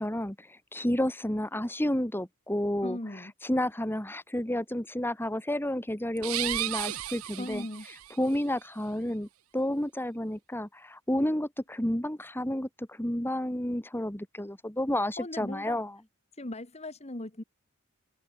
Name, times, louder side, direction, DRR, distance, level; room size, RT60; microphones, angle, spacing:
voice 1, 0.0-3.0 3.4-7.7 8.2-15.9, left 1 dB, 10° left, 2.6 m, -31 dB
voice 2, 2.8-3.3 7.4-7.9 15.2-15.8 16.4-17.4, left 1 dB, 30° left, 2.0 m, -38 dB
sound 1, 6.2-8.2, right 14 dB, 80° right, 0.7 m, -34 dB
open air
head